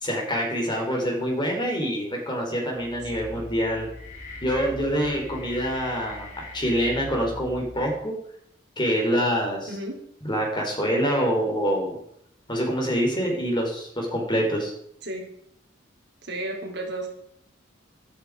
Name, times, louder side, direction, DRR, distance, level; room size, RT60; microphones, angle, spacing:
voice 1, 0.0-3.9 4.4-8.1 8.8-9.7 10.2-12.0 12.5-14.7, equal, 25° left, 1 dB, 4.1 m, -25 dB
sound 1, 2.8-8.1, left 1 dB, 40° left, 3.2 m, -41 dB
voice 2, 9.7-10.0 15.0-15.3 16.2-17.1, right 1 dB, 60° right, 0 dB, 4.0 m, -33 dB
13.5 x 13.0 x 4.9 m, 0.70 s
head